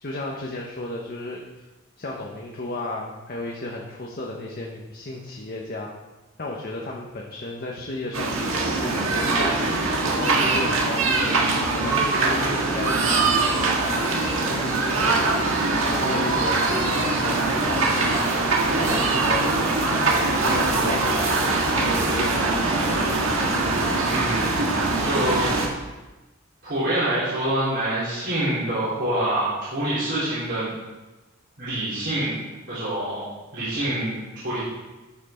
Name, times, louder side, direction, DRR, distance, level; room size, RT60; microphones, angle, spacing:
voice 1, 0.0-1.4 2.0-5.9 6.4-9.5 10.0-11.4 11.7-15.6 15.9-18.2 18.7-19.5 19.9-23.1, left 2 dB, 45° left, -2 dB, 1.0 m, -33 dB
sound 1, 8.1-25.7, right 3 dB, 80° right, 1.7 m, -22 dB
voice 2, 24.0-24.6 25.0-25.5 26.6-30.7 31.6-32.3 32.7-33.2 33.5-34.2 34.4-34.6, right 1 dB, 55° right, -12 dB, 3.7 m, -26 dB
12.5 x 6.0 x 4.4 m, 1.1 s
head